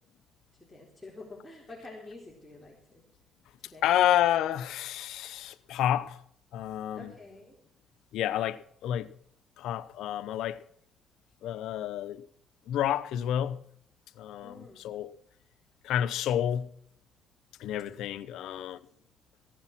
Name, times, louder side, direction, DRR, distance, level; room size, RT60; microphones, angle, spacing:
voice 1, 0.6-3.0 3.6-3.9 6.9-7.6 14.4-14.8 18.3-18.7, left 2 dB, 10° left, 4.2 m, -48 dB
voice 2, 3.8-6.2 6.5-7.1 8.1-9.1 9.6-10.6 11.4-12.2 12.7-13.6 14.2-15.1 15.8-16.7 17.6-18.8, left 11 dB, 85° left, 0.8 m, -29 dB
16.0 x 10.5 x 6.0 m
cardioid pair, 90°, 0 cm